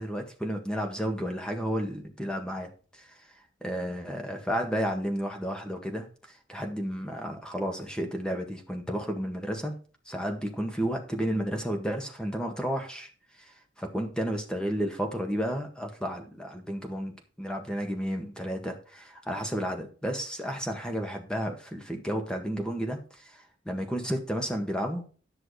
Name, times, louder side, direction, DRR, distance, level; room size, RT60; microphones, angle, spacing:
voice 1, 0.0-3.1 3.6-9.7 10.1-13.1 13.4-13.5 13.8-25.0, equal, 5° left, 4 dB, 1.7 m, -32 dB
11.0 x 6.1 x 4.9 m, 0.39 s
head